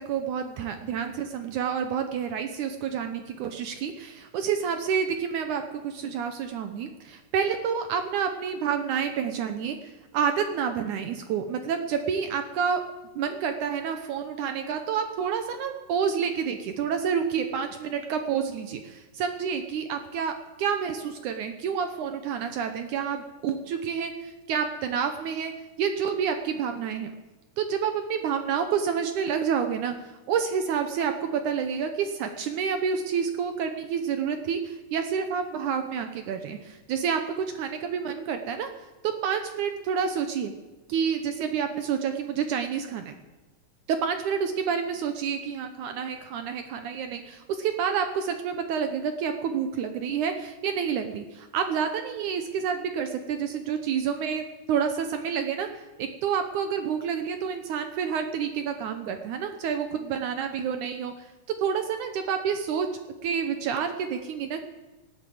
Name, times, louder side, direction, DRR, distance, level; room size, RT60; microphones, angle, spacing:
voice 1, 0.0-12.8 13.2-25.5 25.8-27.1 27.6-29.9 30.3-38.7 39.0-40.5 40.9-43.1 43.9-54.4 54.7-61.1 61.6-62.9 63.2-64.6, right 7 dB, 75° right, 7 dB, 1.8 m, -29 dB
18.5 x 8.7 x 7.8 m, 1.1 s
omnidirectional pair, 4.5 m